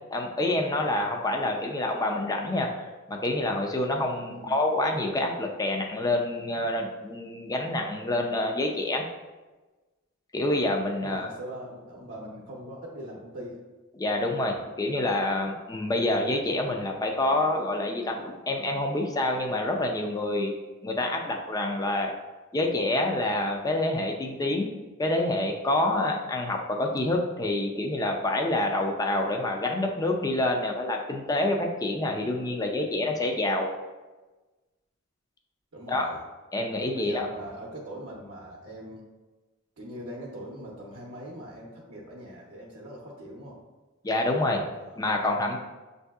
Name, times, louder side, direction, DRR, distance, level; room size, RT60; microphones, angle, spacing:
voice 1, 0.1-9.1 10.3-11.3 14.0-20.6 20.8-22.1 22.5-24.7 25.0-33.7 35.9-36.1 36.5-37.3 44.0-44.7 45.0-45.6, left 1 dB, 15° left, 2 dB, 0.4 m, -27 dB
voice 2, 11.0-13.6 35.7-36.2 36.9-39.0 39.8-43.6 44.7-45.0, right 1 dB, 60° right, -5 dB, 0.7 m, -41 dB
6.6 x 2.7 x 2.3 m, 1.2 s
head